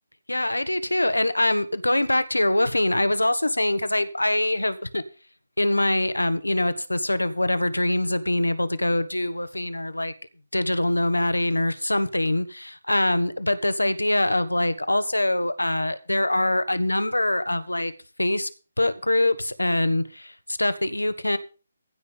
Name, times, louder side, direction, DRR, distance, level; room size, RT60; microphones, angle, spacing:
voice 1, 0.3-5.0 5.6-10.1 10.5-17.9 18.2-18.5 18.8-21.4, left 1 dB, 90° left, 1.3 m, -24 dB
15.5 x 5.6 x 6.8 m
figure-of-eight pair, 145°, 0 cm